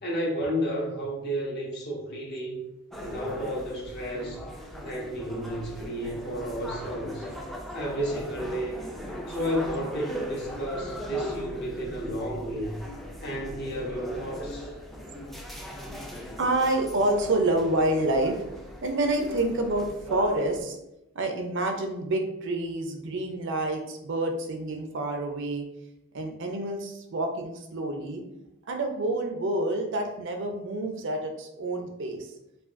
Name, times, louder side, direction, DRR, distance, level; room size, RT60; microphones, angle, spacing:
voice 1, 0.0-2.6 3.0-4.4 4.8-7.3 7.7-8.9 9.3-12.7 13.2-14.7, equal, 55° left, -3 dB, 1.0 m, -32 dB
sound 1, 2.9-20.6, equal, ahead, 0.4 m, -39 dB
voice 2, 16.4-18.4 18.8-20.8 21.1-25.7 26.1-28.2 28.7-32.3, right 2 dB, 60° right, 4 dB, 0.5 m, -28 dB
4.8 x 2.3 x 2.5 m, 0.89 s
head